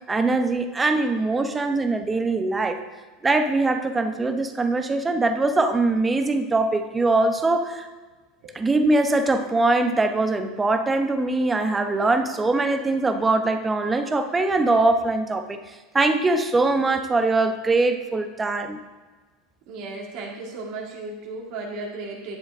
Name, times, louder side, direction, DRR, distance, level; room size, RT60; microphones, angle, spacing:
voice 1, 0.1-2.8 3.2-7.9 8.5-15.6 15.9-18.8, right 2 dB, 15° right, 7 dB, 0.9 m, -22 dB
voice 2, 19.7-22.4, right 3 dB, 65° right, -1 dB, 2.2 m, -35 dB
10.5 x 7.3 x 3.6 m, 1.4 s
hypercardioid pair, 100°, 0 cm